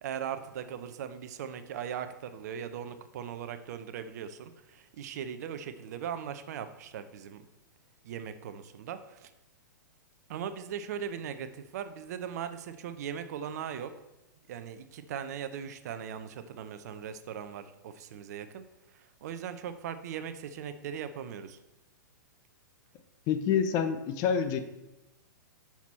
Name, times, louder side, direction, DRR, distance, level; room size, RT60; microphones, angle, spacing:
voice 1, 0.0-7.4 8.0-9.3 10.3-13.9 14.5-18.6 18.9-21.6, right 8 dB, 55° right, 10 dB, 0.6 m, -39 dB
voice 2, 23.3-24.6, left 7 dB, 35° left, 9 dB, 0.7 m, -27 dB
6.0 x 5.8 x 4.3 m, 0.96 s
figure-of-eight pair, 110°, 11 cm